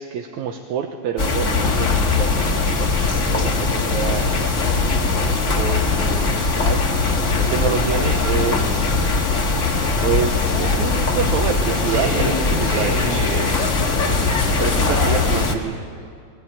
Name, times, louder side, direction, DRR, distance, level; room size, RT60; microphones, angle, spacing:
voice 1, 0.0-4.5 5.3-6.8 7.4-8.9 10.0-13.0 14.6-16.1, right 8 dB, 75° right, 5 dB, 2.3 m, -27 dB
sound 1, 1.2-15.5, left 4 dB, 35° left, 1.4 m, -20 dB
voice 2, 11.9-15.3, right 1 dB, 45° right, -5 dB, 5.1 m, -28 dB
20.5 x 20.0 x 8.8 m, 2.1 s
omnidirectional pair, 3.4 m